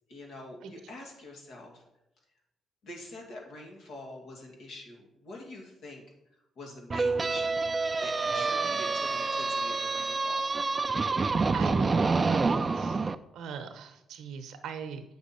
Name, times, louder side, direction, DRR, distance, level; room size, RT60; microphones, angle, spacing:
voice 1, 0.1-1.8 2.8-6.0 6.6-7.6 8.0-10.4, left 2 dB, 70° left, 0 dB, 2.1 m, -45 dB
sound 1, 6.9-13.1, right 4 dB, 30° right, 0.4 m, -27 dB
voice 2, 11.5-15.0, right 5 dB, 80° right, 8 dB, 0.8 m, -40 dB
8.0 x 6.1 x 4.3 m, 0.87 s
cardioid pair, 90°, 0 cm